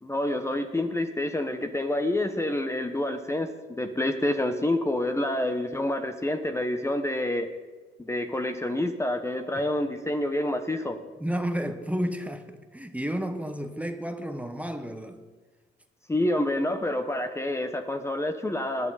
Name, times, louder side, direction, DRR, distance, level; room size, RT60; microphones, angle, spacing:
voice 1, 0.0-3.5 3.8-7.5 8.0-11.0 16.1-18.9, left 1 dB, 15° left, 1.1 m, -28 dB
voice 2, 11.2-15.2, equal, 5° right, 1.2 m, -32 dB
20.0 x 11.5 x 4.2 m
cardioid pair, 90°, 20 cm